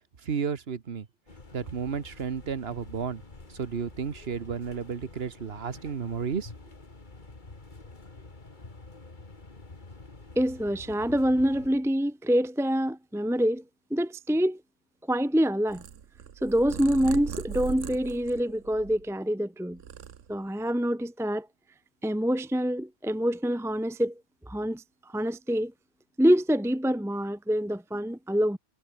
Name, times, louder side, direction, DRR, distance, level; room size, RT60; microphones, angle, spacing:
voice 1, 0.2-1.1 1.5-3.2 3.5-6.5, right 6 dB, 55° right, 1.5 m, -32 dB
sound 1, 1.3-11.7, left 3 dB, 40° left, 2.5 m, -48 dB
voice 2, 10.4-13.6 13.9-14.6 15.1-15.8 16.4-19.8 20.3-21.5 22.0-24.1 24.5-25.7 26.2-28.6, equal, 5° right, 0.4 m, -26 dB
Purr, 15.7-19.2 19.6-20.7, right 8 dB, 85° right, 1.4 m, -39 dB
omnidirectional pair, 1.3 m